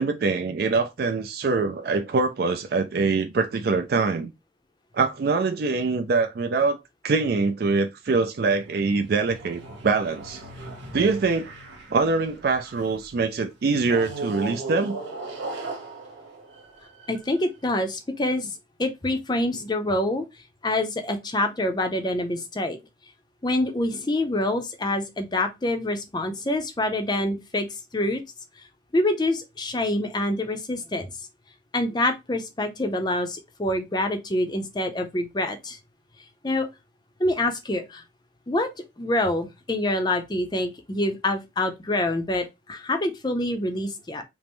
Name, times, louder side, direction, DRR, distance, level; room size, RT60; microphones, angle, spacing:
voice 1, 0.0-4.3 4.9-10.4 10.9-11.5 11.9-15.0, right 4 dB, 55° right, 0.3 m, -24 dB
sound 1, 8.4-13.0 13.8-17.4, right 3 dB, 85° right, 1.4 m, -38 dB
voice 2, 17.1-20.2 20.6-22.8 23.4-28.2 28.6-28.7 28.9-31.1 31.7-35.8 36.4-36.7 37.2-38.0 38.5-38.7 39.0-44.2, left 1 dB, 20° left, 0.5 m, -26 dB
5.2 x 2.0 x 3.0 m
head